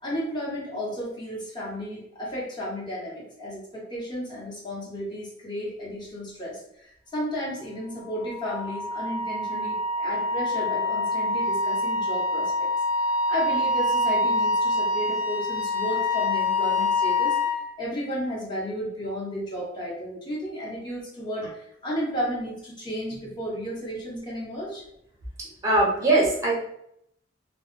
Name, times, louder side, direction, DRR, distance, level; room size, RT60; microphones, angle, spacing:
voice 1, 0.0-12.7 13.0-24.8, equal, 25° left, -6 dB, 0.9 m, -33 dB
Wind instrument woodwind instrument, 8.2-17.6, left 2 dB, 45° left, 0.4 m, -25 dB
voice 2, 25.4-26.5, right 2 dB, 15° right, -4 dB, 0.6 m, -21 dB
2.2 x 2.0 x 3.0 m, 0.74 s
head